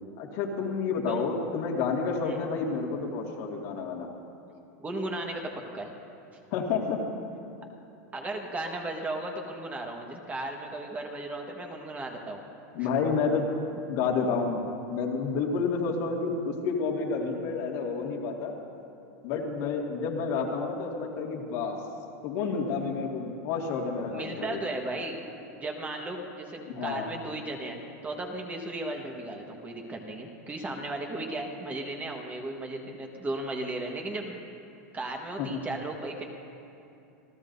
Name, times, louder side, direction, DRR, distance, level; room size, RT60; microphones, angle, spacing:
voice 1, 0.2-4.1 6.5-7.0 7.6-7.7 12.7-13.5 13.9-18.5 19.2-21.8 22.2-24.6 26.7-27.1 35.4-35.6, left 5 dB, 60° left, -1 dB, 2.2 m, -30 dB
voice 2, 4.8-5.9 8.1-12.4 12.8-12.9 24.1-25.2 25.6-34.4 34.9-36.2, right 2 dB, 15° right, 2 dB, 1.4 m, -35 dB
27.5 x 13.5 x 2.7 m, 2.8 s
supercardioid pair, 130°, 9 cm